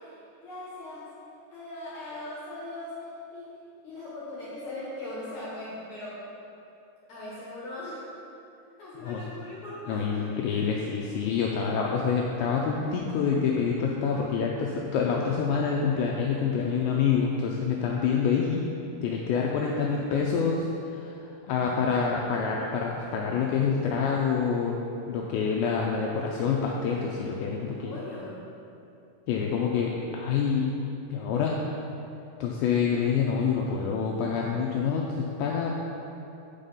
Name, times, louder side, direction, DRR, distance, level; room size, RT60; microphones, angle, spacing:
voice 1, 0.4-1.1 1.5-3.6 3.8-6.2 7.0-8.0 8.8-10.2 27.6-28.4, left 2 dB, 65° left, -9 dB, 1.9 m, -39 dB
voice 2, 9.9-18.6 19.0-21.2 21.5-24.8 25.1-27.9 29.3-30.7 31.1-31.6 32.4-35.7, left 6 dB, 85° left, -2 dB, 2.6 m, -27 dB
9.2 x 5.6 x 5.3 m, 2.7 s
omnidirectional pair, 5.8 m